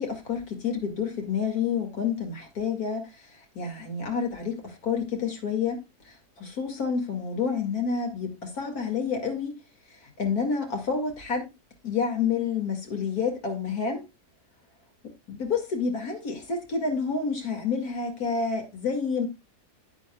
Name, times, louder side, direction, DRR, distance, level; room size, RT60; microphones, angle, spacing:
voice 1, 0.0-3.3 3.5-9.5 10.0-11.5 11.8-14.0 15.3-19.3, left 5 dB, 65° left, 2.6 m, -29 dB
10.5 x 9.2 x 2.2 m
omnidirectional pair, 1.7 m